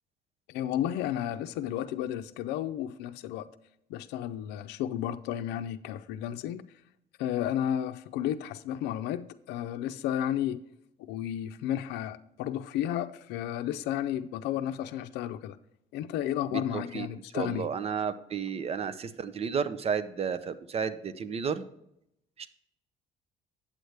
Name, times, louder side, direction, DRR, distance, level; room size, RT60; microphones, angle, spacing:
voice 1, 0.5-3.5 3.9-6.6 7.2-10.6 11.0-15.6 15.9-17.7, left 11 dB, 90° left, 0.5 m, -32 dB
voice 2, 16.5-17.1 17.3-21.6 22.4-22.5, right 6 dB, 35° right, 0.7 m, -32 dB
8.8 x 7.9 x 3.3 m
cardioid pair, 110°, 17 cm